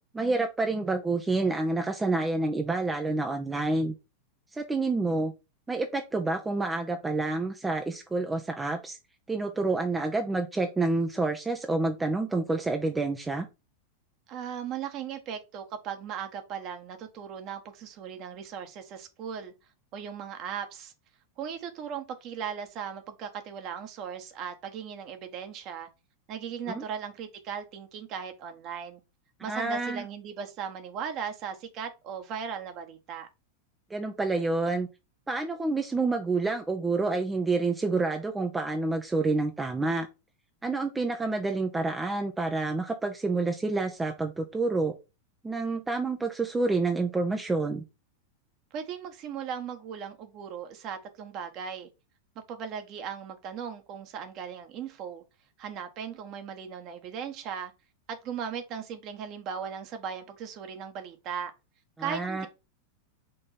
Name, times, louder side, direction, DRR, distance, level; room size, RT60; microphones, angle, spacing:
voice 1, 0.1-3.9 4.5-5.3 5.7-9.0 9.3-13.5 26.7-26.8 29.4-30.0 33.9-34.9 35.3-40.1 40.6-44.9 45.4-47.8 62.0-62.5, right 3 dB, 10° right, 0.8 m, -28 dB
voice 2, 14.3-19.5 19.9-20.9 21.4-25.9 26.3-29.0 29.4-33.3 48.7-51.9 52.5-55.2 55.6-57.7 58.1-61.5 62.0-62.5, right 7 dB, 40° right, 1.6 m, -37 dB
5.4 x 3.9 x 5.8 m
figure-of-eight pair, 90°, 0 cm